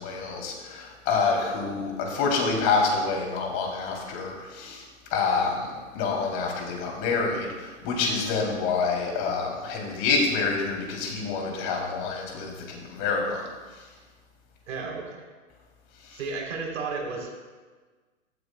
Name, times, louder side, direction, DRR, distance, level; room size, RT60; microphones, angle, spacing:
voice 1, 0.0-4.8 5.1-13.4 16.1-16.2, left 4 dB, 35° left, 0 dB, 3.2 m, -27 dB
voice 2, 14.7-15.2 16.1-17.3, right 4 dB, 65° right, -1 dB, 3.5 m, -33 dB
15.0 x 13.0 x 2.3 m, 1.4 s
hypercardioid pair, 130°, 41 cm